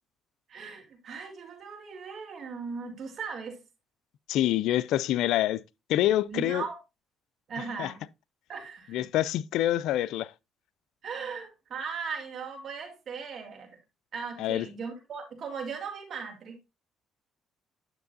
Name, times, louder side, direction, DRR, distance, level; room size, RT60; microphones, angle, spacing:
voice 1, 0.5-3.6 6.3-6.8 7.5-8.0 8.5-9.1 11.0-13.8 14.1-16.6, right 5 dB, 55° right, 3.2 m, -38 dB
voice 2, 4.3-5.6 5.9-6.6 7.8-7.9 8.9-10.3 14.4-14.7, left 13 dB, 80° left, 0.4 m, -26 dB
9.5 x 7.3 x 2.6 m
cardioid pair, 90°, 0 cm